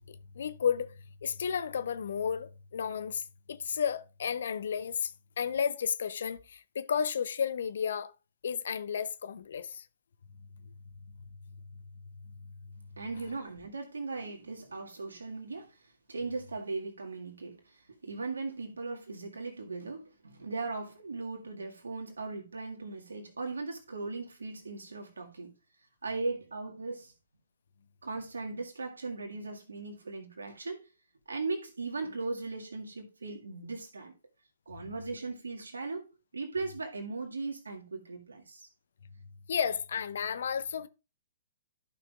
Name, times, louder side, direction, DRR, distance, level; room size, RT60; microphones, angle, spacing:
voice 1, 0.1-0.9 1.2-5.1 5.4-8.1 8.4-9.9 39.5-40.9, left 7 dB, 65° left, 0.6 m, -32 dB
voice 2, 13.0-25.5 26.0-27.1 28.0-30.8 31.3-34.1 34.7-38.7, right 3 dB, 80° right, 1.8 m, -38 dB
13.5 x 5.9 x 2.4 m
figure-of-eight pair, 120°, 0 cm